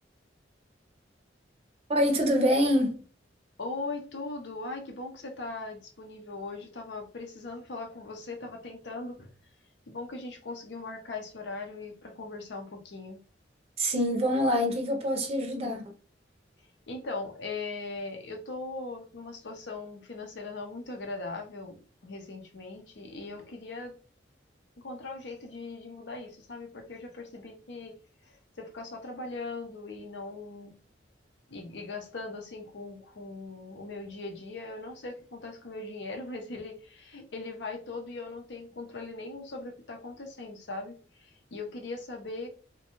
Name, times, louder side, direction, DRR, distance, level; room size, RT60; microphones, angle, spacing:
voice 1, 1.9-3.0 13.8-15.9, equal, 35° right, 0.5 m, -25 dB
voice 2, 3.6-9.3 9.9-13.2 16.9-24.0 24.8-27.9 28.3-30.8 31.5-42.5, left 3 dB, 70° left, 0.6 m, -40 dB
2.5 x 2.2 x 2.9 m
head